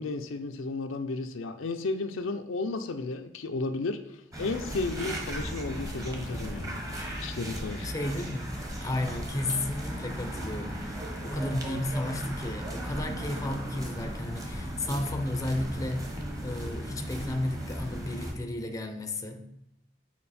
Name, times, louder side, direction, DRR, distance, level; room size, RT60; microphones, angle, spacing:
voice 1, 0.0-4.0 4.4-6.8 7.2-7.9, left 3 dB, 80° left, 7 dB, 0.6 m, -33 dB
sound 1, 4.3-18.3, equal, 15° right, 1.0 m, -36 dB
voice 2, 7.8-19.5, left 1 dB, 15° left, 6 dB, 0.5 m, -33 dB
7.5 x 4.6 x 4.2 m, 0.82 s
head